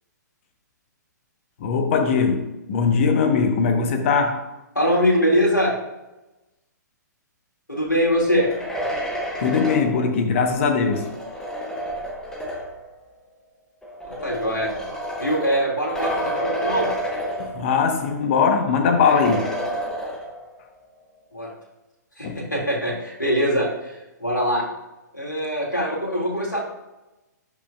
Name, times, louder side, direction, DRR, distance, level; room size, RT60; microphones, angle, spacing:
voice 1, 1.6-4.4 9.4-11.1 17.4-19.5 22.2-22.4, left 5 dB, 40° left, 5 dB, 1.2 m, -20 dB
voice 2, 4.7-5.7 7.7-8.5 14.0-14.7 15.2-16.9 21.3-21.5 22.2-24.6 25.1-26.6, equal, 85° left, -4 dB, 2.5 m, -22 dB
sound 1, 8.2-12.9 13.8-18.0 18.3-18.4 19.0-20.6, right 1 dB, 5° left, 1.2 m, -30 dB
11.5 x 5.6 x 2.4 m, 1.0 s
figure-of-eight pair, 120°, 10 cm